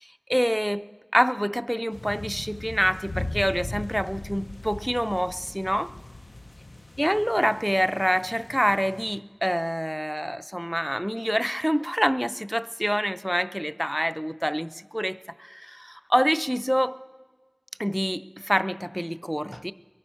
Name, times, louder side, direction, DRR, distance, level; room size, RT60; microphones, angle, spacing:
voice 1, 0.3-0.9 1.1-5.9 7.0-17.0 17.8-19.7, equal, 5° right, 11 dB, 0.4 m, -26 dB
sound 1, 1.9-9.2, left 2 dB, 75° left, 0.5 m, -39 dB
22.5 x 9.6 x 5.6 m, 1.5 s
wide cardioid pair, 40°, 0 cm